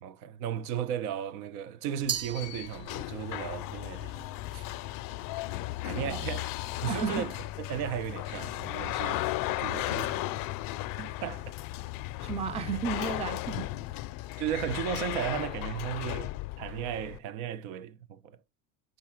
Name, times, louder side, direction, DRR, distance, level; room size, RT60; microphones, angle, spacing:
voice 1, 0.0-4.7 5.8-6.5 6.8-7.4 7.7-10.4 11.0-11.5 14.4-18.4, right 9 dB, 75° right, 0.9 m, -35 dB
sound 1, 2.0-17.2, left 17 dB, 50° left, 0.5 m, -35 dB
Glass, 2.1-3.3, right 8 dB, 35° right, 0.8 m, -36 dB
voice 2, 6.0-6.3 6.9-7.3 12.2-13.7, right 6 dB, 15° right, 0.5 m, -33 dB
5.6 x 3.9 x 5.7 m
supercardioid pair, 110°, 43 cm